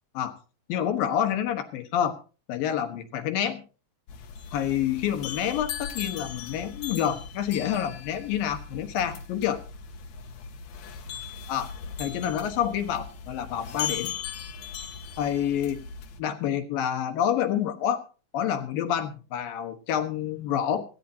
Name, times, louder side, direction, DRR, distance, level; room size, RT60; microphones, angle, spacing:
voice 1, 0.7-2.2 2.5-3.6 4.5-9.6 11.5-11.7 12.0-14.1 15.2-15.8 16.2-18.0 18.3-20.8, left 9 dB, 80° left, 8 dB, 3.1 m, -28 dB
sound 1, 4.1-16.2, left 7 dB, 65° left, 2.2 m, -38 dB
18.5 x 15.5 x 2.8 m, 0.35 s
omnidirectional pair, 4.0 m